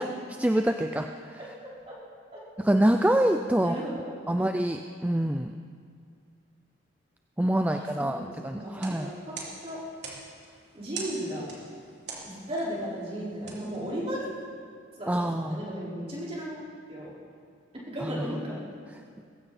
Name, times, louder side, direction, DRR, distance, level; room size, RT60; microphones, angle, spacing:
voice 1, 0.0-1.4 2.6-3.8 4.3-5.5 7.4-9.1 15.1-15.6 18.0-18.4, right 1 dB, 10° right, 6 dB, 0.4 m, -26 dB
voice 2, 1.4-1.9 3.6-4.5 7.7-8.7 9.0-9.3 9.6-9.8 10.7-11.5 12.2-14.2 15.0-16.6 16.9-17.1 17.9-18.6, equal, 30° right, -7 dB, 4.7 m, -35 dB
sound 1, 8.6-14.5, right 4 dB, 60° right, 3.3 m, -44 dB
21.0 x 16.0 x 4.3 m, 2.2 s
head